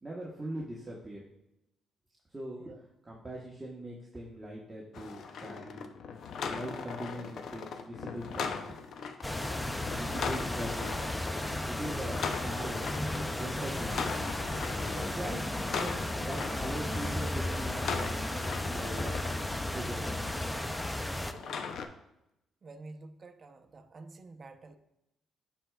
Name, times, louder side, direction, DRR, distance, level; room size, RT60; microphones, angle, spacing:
voice 1, 0.0-1.2 2.3-2.8 3.0-5.8 6.5-8.6 9.2-9.5 10.0-13.0 13.4-14.4 14.9-19.2 19.7-20.2, right 1 dB, 20° right, -4 dB, 1.2 m, -41 dB
sound 1, 4.9-19.4 21.3-21.9, left 5 dB, 65° left, 0.6 m, -39 dB
sound 2, 9.2-21.3, left 1 dB, 10° left, 0.5 m, -34 dB
voice 2, 22.6-24.8, right 3 dB, 40° right, 6 dB, 0.7 m, -49 dB
11.5 x 4.4 x 2.3 m, 0.85 s
cardioid pair, 90°, 0 cm